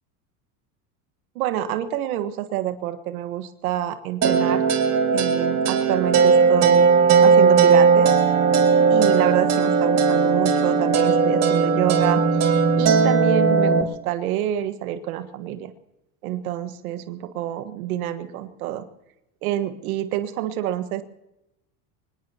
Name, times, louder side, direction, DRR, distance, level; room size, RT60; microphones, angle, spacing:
voice 1, 1.3-4.6 5.1-6.9 7.2-8.1 8.9-12.2 12.8-15.7 16.2-18.8 19.4-21.0, right 12 dB, 90° right, 8 dB, 1.5 m, -27 dB
sound 1, 4.2-13.8, right 5 dB, 35° right, 2.3 m, -17 dB
24.0 x 20.5 x 2.9 m, 0.89 s
supercardioid pair, 125°, 42 cm